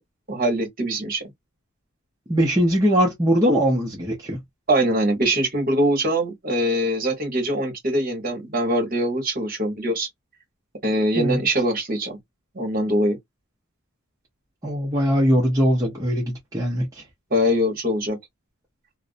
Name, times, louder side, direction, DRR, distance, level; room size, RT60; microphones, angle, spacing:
voice 1, 0.3-1.3 4.7-10.1 10.8-12.2 12.5-13.2 17.3-18.2, equal, 40° right, 1.0 m, -23 dB
voice 2, 2.3-4.4 11.2-11.4 14.6-17.0, equal, 15° right, 0.6 m, -21 dB
2.6 x 2.0 x 2.4 m
head